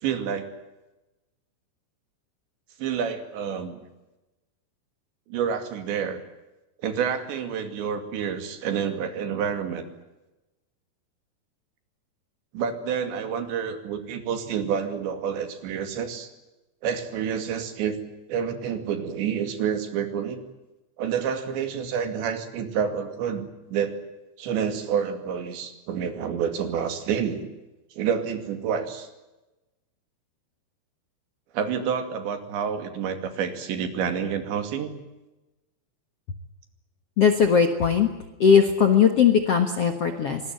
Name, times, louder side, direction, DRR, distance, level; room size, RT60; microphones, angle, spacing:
voice 1, 0.0-0.5 2.8-3.8 5.3-6.2 6.8-9.9 12.5-16.3 16.8-18.0 18.3-20.4 21.0-24.0 24.4-27.5 27.9-29.1 31.5-34.9, right 7 dB, 80° right, 8 dB, 4.7 m, -28 dB
voice 2, 37.2-38.1 38.4-40.4, left 7 dB, 60° left, 7 dB, 1.5 m, -19 dB
25.0 x 20.5 x 9.3 m, 1.0 s
omnidirectional pair, 5.1 m